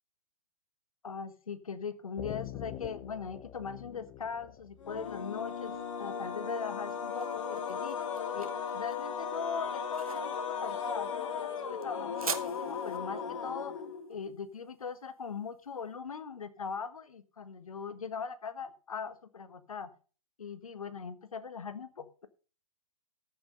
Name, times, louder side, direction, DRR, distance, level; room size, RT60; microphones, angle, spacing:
voice 1, 1.0-5.7 6.0-8.0 8.3-13.8 14.1-19.9 20.4-22.3, left 6 dB, 80° left, 1.4 m, -40 dB
sound 1, 2.2-5.8, left 12 dB, 25° left, 0.8 m, -45 dB
sound 2, 4.8-14.2, left 6 dB, 60° left, 2.1 m, -36 dB
sound 3, 6.7-15.7, right 5 dB, 85° right, 1.7 m, -44 dB
14.0 x 6.2 x 5.5 m
hypercardioid pair, 125°, 18 cm